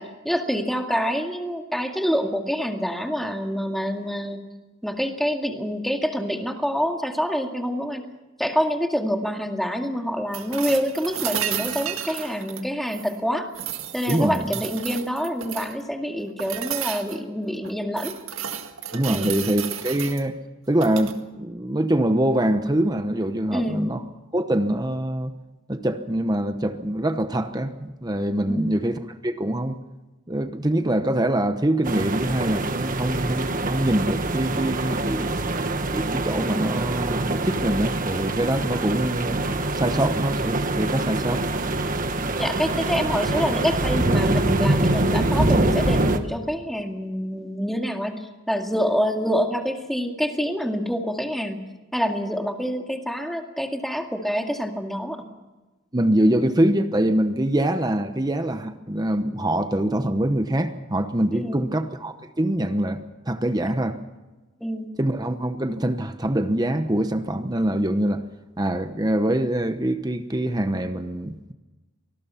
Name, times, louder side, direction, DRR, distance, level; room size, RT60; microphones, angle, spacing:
voice 1, 0.0-4.5 4.8-8.0 8.4-13.5 13.9-18.2 19.1-19.3 23.5-23.9 28.5-28.7 42.4-51.6 51.9-55.3 61.3-61.6 64.6-64.9, equal, ahead, 3 dB, 2.1 m, -26 dB
sound 1, 10.3-13.2 13.5-15.8 16.4-17.2 17.6-20.2 20.7-21.2 23.2-23.3, right 9 dB, 75° right, 1.9 m, -32 dB
voice 2, 14.1-14.4 18.9-20.4 20.7-24.0 24.3-25.3 25.7-29.8 30.3-35.4 35.9-39.4 39.7-41.5 42.2-42.3 55.9-64.0 65.0-68.2 68.6-71.5, right 1 dB, 20° right, 8 dB, 1.0 m, -24 dB
sound 2, 31.8-46.2, right 2 dB, 40° right, 1.5 m, -24 dB
25.5 x 19.5 x 5.8 m, 1.1 s
head